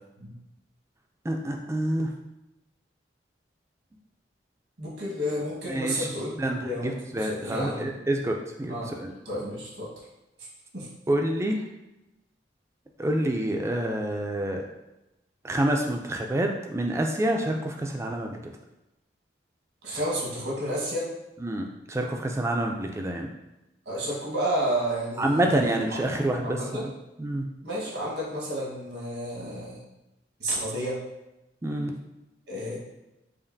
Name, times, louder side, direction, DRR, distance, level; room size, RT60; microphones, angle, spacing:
voice 1, 1.2-2.1 5.7-6.1 6.4-9.1 11.1-11.6 13.0-14.7 15.4-18.5 21.4-23.3 25.2-26.9 27.2-27.5 31.6-31.9, right 1 dB, 15° right, 2 dB, 0.3 m, -27 dB
voice 2, 4.8-7.9 8.7-8.9 9.2-9.9 10.7-10.9 19.8-21.1 23.8-26.2 26.4-26.9 27.6-29.8 30.4-31.0 32.5-32.8, equal, 85° right, -5 dB, 1.4 m, -31 dB
5.0 x 2.5 x 2.7 m, 0.95 s
head